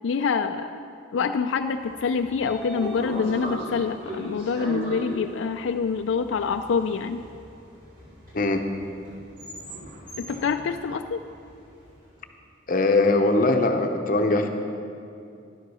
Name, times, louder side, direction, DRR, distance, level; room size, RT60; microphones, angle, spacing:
voice 1, 0.0-0.7 1.1-7.2 10.2-11.2, left 5 dB, 85° left, 7 dB, 0.4 m, -26 dB
Train / Sliding door, 1.8-12.0, right 1 dB, 45° right, 2.9 m, -38 dB
voice 2, 12.7-14.5, left 2 dB, 45° left, 5 dB, 0.8 m, -21 dB
11.0 x 8.3 x 6.1 m, 2.6 s
head